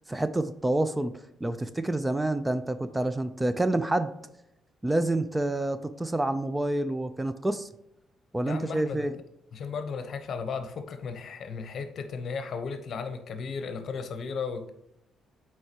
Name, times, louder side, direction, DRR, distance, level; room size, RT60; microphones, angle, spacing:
voice 1, 0.1-1.1 1.4-4.1 4.8-7.7 8.3-9.1, right 1 dB, 15° right, 12 dB, 0.4 m, -28 dB
voice 2, 8.5-9.1 9.5-14.7, left 5 dB, 60° left, 8 dB, 0.8 m, -35 dB
7.8 x 4.5 x 2.9 m, 0.82 s
cardioid pair, 90°, 0 cm